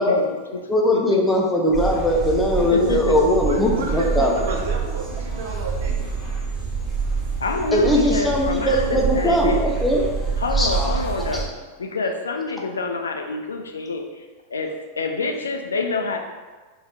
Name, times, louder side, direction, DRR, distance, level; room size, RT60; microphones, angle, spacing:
voice 1, 0.0-1.3 2.7-3.2 7.4-9.6 10.4-11.5 11.8-14.2 14.5-16.2, left 3 dB, 70° left, 4 dB, 0.3 m, -27 dB
voice 2, 0.7-4.3 7.7-10.1 10.5-10.9 11.2-11.5, left 1 dB, 10° left, -1 dB, 0.6 m, -20 dB
sound 1, 1.7-11.4, right 5 dB, 15° right, 1.3 m, -26 dB
voice 3, 3.4-6.1, right 3 dB, 60° right, 1 dB, 0.6 m, -31 dB
3.9 x 2.6 x 3.2 m, 1.4 s
figure-of-eight pair, 90°, 0 cm